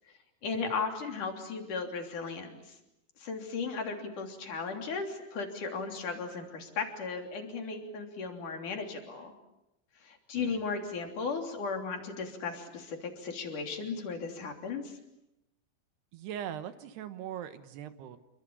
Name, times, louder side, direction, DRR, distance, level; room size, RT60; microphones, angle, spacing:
voice 1, 0.4-2.8 3.2-9.3 10.0-15.0, left 4 dB, 45° left, 3 dB, 4.3 m, -36 dB
voice 2, 16.1-18.2, right 10 dB, 70° right, 10 dB, 3.0 m, -41 dB
28.0 x 24.0 x 8.7 m, 0.88 s
omnidirectional pair, 5.5 m